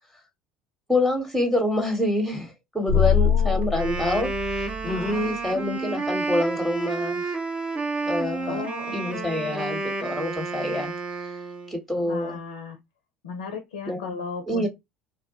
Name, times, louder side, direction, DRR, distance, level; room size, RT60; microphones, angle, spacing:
voice 1, 0.9-7.4 8.0-8.6 8.9-10.9 11.2-11.3 11.7-12.4 13.9-14.7, left 1 dB, ahead, 0.9 m, -27 dB
voice 2, 2.9-3.7 4.9-5.3 8.5-9.7 12.0-12.8 13.2-14.7, left 5 dB, 80° left, 0.5 m, -35 dB
sound 1, 2.9-5.3, left 6 dB, 70° right, 0.7 m, -24 dB
Wind instrument woodwind instrument, 3.6-11.8, right 3 dB, 30° right, 0.6 m, -30 dB
2.1 x 2.1 x 2.7 m
hypercardioid pair, 65°, 4 cm